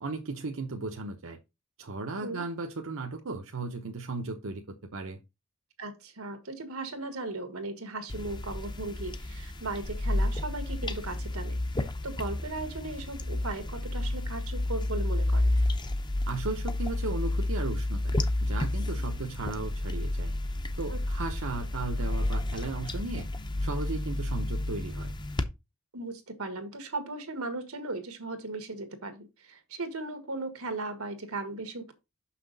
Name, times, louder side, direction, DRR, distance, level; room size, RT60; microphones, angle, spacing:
voice 1, 0.0-1.4 1.8-5.2 16.3-20.3 20.8-23.3 23.6-25.1, right 3 dB, 65° right, 0.8 m, -36 dB
voice 2, 5.8-15.6 20.9-21.0 25.9-31.9, right 2 dB, 90° right, 1.6 m, -37 dB
sound 1, 8.1-25.4, left 1 dB, 20° left, 0.6 m, -31 dB
6.2 x 5.9 x 3.9 m
head